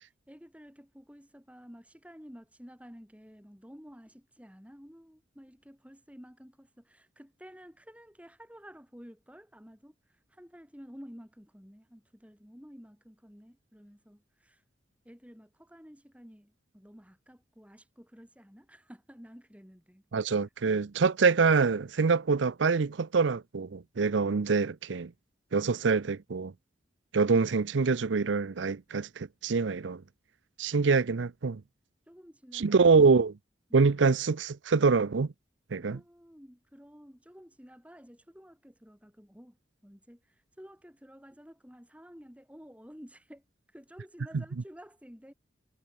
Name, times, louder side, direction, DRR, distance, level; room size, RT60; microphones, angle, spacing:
voice 1, 0.3-14.6 15.0-20.5 32.1-33.0 35.8-39.6 39.8-43.4 43.7-45.3, equal, 5° right, 5.6 m, -52 dB
voice 2, 20.1-25.1 25.5-26.5 27.1-30.0 30.6-31.6 32.5-33.3 33.7-35.3 35.7-36.0, right 4 dB, 85° right, 0.6 m, -25 dB
head